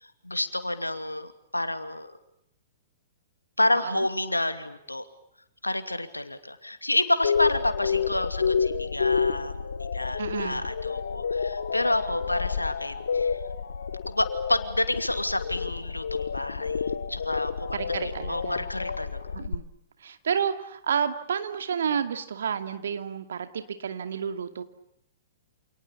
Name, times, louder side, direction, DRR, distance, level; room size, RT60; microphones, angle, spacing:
voice 1, 0.2-2.1 3.6-5.0 5.6-13.4 14.1-19.4, left 1 dB, 85° left, 9 dB, 2.6 m, -29 dB
voice 2, 3.8-4.1 10.2-10.6 17.7-18.7 19.3-19.6 20.0-24.6, right 7 dB, 60° right, 9 dB, 2.5 m, -30 dB
sound 1, 7.2-19.5, left 6 dB, 65° left, 1.5 m, -29 dB
29.0 x 27.5 x 7.3 m, 0.74 s
figure-of-eight pair, 110°, 0 cm